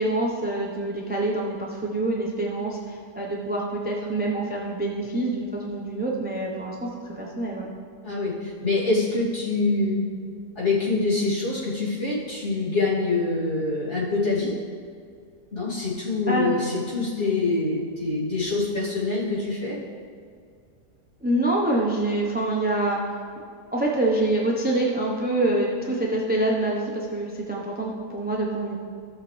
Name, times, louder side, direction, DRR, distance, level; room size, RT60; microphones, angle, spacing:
voice 1, 0.0-7.7 16.3-16.5 21.2-23.2 23.7-28.8, right 2 dB, 5° right, -2 dB, 0.8 m, -26 dB
voice 2, 8.0-10.1 10.5-14.5 15.5-19.8, left 3 dB, 40° left, -8 dB, 3.3 m, -25 dB
15.5 x 6.7 x 3.4 m, 2.2 s
omnidirectional pair, 1.8 m